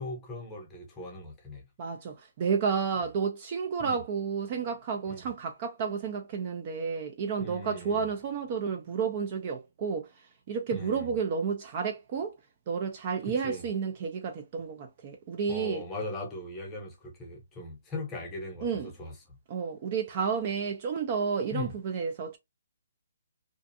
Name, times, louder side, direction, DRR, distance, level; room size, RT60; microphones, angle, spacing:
voice 1, 0.0-1.6 3.8-4.0 5.1-5.3 7.4-8.1 10.7-11.1 13.3-13.6 15.5-19.4 21.5-21.7, left 2 dB, 10° left, 0.8 m, -39 dB
voice 2, 1.8-12.4 12.7-15.8 18.6-18.9 19.5-22.4, right 6 dB, 30° right, 0.3 m, -31 dB
2.5 x 2.3 x 2.6 m
hypercardioid pair, 170°, 0 cm